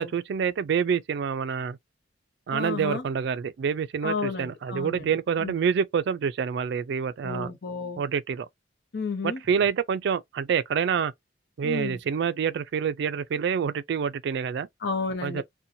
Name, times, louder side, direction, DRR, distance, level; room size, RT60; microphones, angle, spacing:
voice 1, 0.0-1.8 2.5-7.5 8.0-8.5 9.2-11.1 11.6-14.7 15.2-15.4, right 7 dB, 65° right, 0.3 m, -27 dB
voice 2, 2.5-3.0 4.0-5.1 5.4-5.6 7.2-8.0 8.9-9.4 11.6-12.0 14.8-15.4, left 4 dB, 60° left, 0.7 m, -32 dB
2.7 x 2.2 x 2.6 m
head